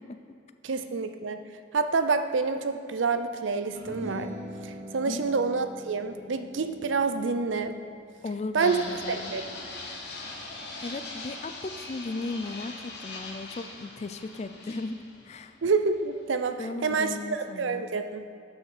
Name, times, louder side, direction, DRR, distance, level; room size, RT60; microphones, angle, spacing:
voice 1, 0.6-1.4 1.7-4.3 4.6-7.8 8.5-8.8 9.1-9.4 15.6-18.2, right 4 dB, 80° right, 9 dB, 0.5 m, -28 dB
sound 1, 3.7-10.3, equal, 35° right, 0.8 m, -43 dB
voice 2, 8.2-9.3 10.8-15.0 15.2-15.6 16.6-17.9, left 3 dB, 35° left, 10 dB, 0.3 m, -36 dB
Fixed-wing aircraft airplane, 8.6-16.5, left 2 dB, 55° left, 1.2 m, -41 dB
6.5 x 5.7 x 6.6 m, 2.4 s
head